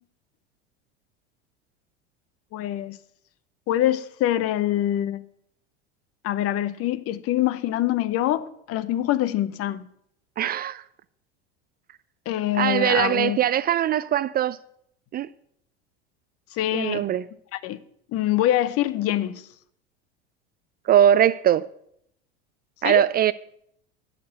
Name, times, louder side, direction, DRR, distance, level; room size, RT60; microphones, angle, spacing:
voice 1, 2.5-3.0 3.7-5.2 6.2-9.8 12.3-13.4 16.5-17.1 17.5-17.8 18.1-19.4 22.8-23.0, left 13 dB, 50° left, 0.8 m, -24 dB
voice 2, 10.4-10.8 12.5-14.6 15.1-15.3 16.7-17.3 20.9-21.7 22.8-23.3, right 10 dB, 30° right, 0.4 m, -21 dB
11.5 x 6.8 x 7.9 m
hypercardioid pair, 80°, 31 cm